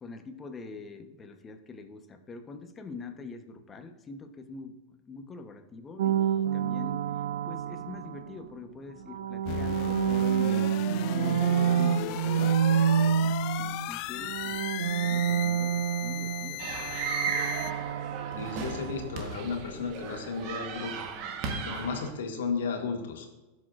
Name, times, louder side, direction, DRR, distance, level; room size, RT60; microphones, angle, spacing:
voice 1, 0.0-4.8 5.1-10.7 11.2-16.7, left 4 dB, 20° left, 7 dB, 0.9 m, -44 dB
sound 1, 6.0-8.4 9.0-13.9 14.2-19.1, right 9 dB, 80° right, 0.4 m, -28 dB
sound 2, 9.5-17.7, left 16 dB, 50° left, 0.3 m, -36 dB
sound 3, 16.6-22.1, right 5 dB, 50° right, 1.2 m, -35 dB
voice 2, 18.4-21.1 21.6-23.3, left 5 dB, 85° left, 3 dB, 1.7 m, -34 dB
15.0 x 6.4 x 2.5 m, 1.1 s
hypercardioid pair, 120°, 0 cm